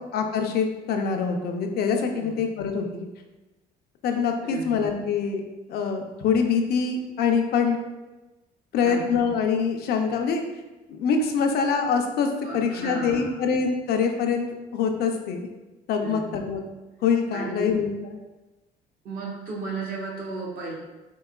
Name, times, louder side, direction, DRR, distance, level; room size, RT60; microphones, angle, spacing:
voice 1, 0.1-3.1 4.0-5.4 5.7-7.8 8.7-10.4 10.9-12.3 12.5-15.4 15.9-16.6 17.0-18.2, left 6 dB, 70° left, 4 dB, 0.5 m, -24 dB
voice 2, 4.4-4.8 8.8-9.2 12.4-13.4 16.0-16.2 17.3-17.7 19.0-20.7, right 3 dB, 65° right, -4 dB, 1.2 m, -34 dB
4.6 x 2.9 x 2.3 m, 1.1 s
cardioid pair, 110°, 17 cm